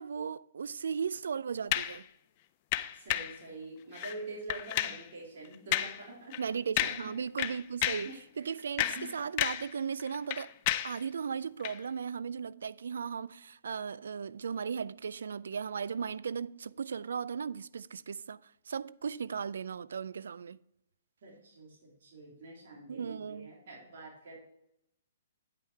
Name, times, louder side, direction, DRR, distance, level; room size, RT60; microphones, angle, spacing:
voice 1, 0.0-2.1 6.4-8.8 9.1-10.5 10.8-20.6 22.9-23.5, right 6 dB, 80° right, 0.3 m, -36 dB
sound 1, 1.7-2.0 2.7-3.4 3.9-4.2 4.5-5.0 5.7-6.0 6.3-6.5 6.8-7.1 7.4-8.1 8.6-9.7 10.0-11.0 11.6-11.8, left 14 dB, 40° left, 0.4 m, -32 dB
voice 2, 2.9-6.3 6.8-7.1 8.0-9.1 21.2-24.4, right 2 dB, 60° right, 3.2 m, -46 dB
9.6 x 5.7 x 4.4 m
hypercardioid pair, 140°, 0 cm